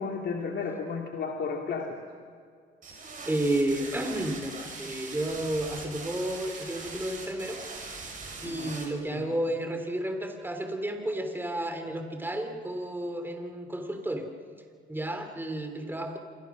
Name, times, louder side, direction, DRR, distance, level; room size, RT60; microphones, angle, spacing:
voice 1, 0.0-2.0 8.4-8.8 9.1-9.3, left 5 dB, 60° left, 1 dB, 2.6 m, -33 dB
sound 1, 2.8-8.9, right 4 dB, 40° right, 7.5 m, -41 dB
voice 2, 3.3-7.6 8.4-14.3 14.9-16.2, right 1 dB, 10° right, 5 dB, 3.5 m, -31 dB
27.0 x 24.5 x 6.4 m, 2.2 s
cardioid pair, 90°, 20 cm